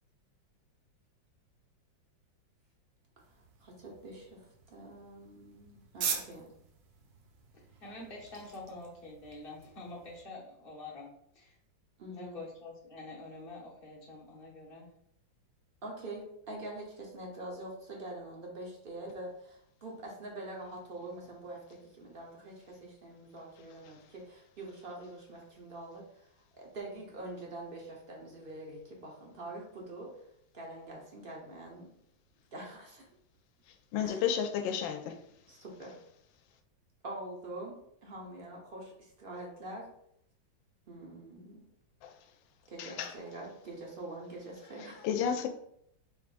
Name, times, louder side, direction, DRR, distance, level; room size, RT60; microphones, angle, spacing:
sound 1, 3.2-10.2, right 6 dB, 80° right, 1.4 m, -43 dB
voice 1, 3.3-6.5 12.0-12.4 15.8-30.1 30.5-31.9 32.5-33.1 34.0-34.2 35.5-36.0 37.0-39.9 40.9-41.7 42.7-45.1, right 2 dB, 50° right, 0.6 m, -45 dB
voice 2, 7.5-11.6 12.1-14.9, left 2 dB, 40° left, 0.8 m, -47 dB
voice 3, 33.9-35.2 42.0-42.1 42.8-43.1 45.0-45.5, left 8 dB, 85° left, 1.3 m, -31 dB
5.0 x 3.5 x 2.5 m
omnidirectional pair, 2.1 m